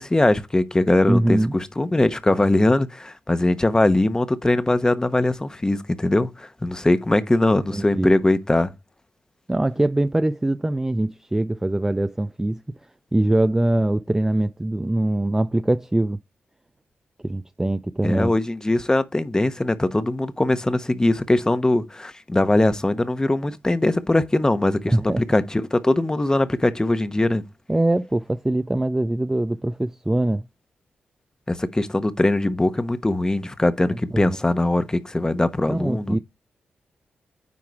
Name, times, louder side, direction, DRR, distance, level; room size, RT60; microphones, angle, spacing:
voice 1, 0.0-8.7 18.0-27.4 31.5-36.2, left 2 dB, 20° left, 1.0 m, -21 dB
voice 2, 1.0-1.6 7.7-8.1 9.5-12.8 13.1-16.2 17.2-18.3 24.9-25.2 27.7-30.5 34.1-34.4 35.7-36.2, right 1 dB, 15° right, 0.4 m, -22 dB
9.5 x 3.7 x 4.7 m
cardioid pair, 65°, 4 cm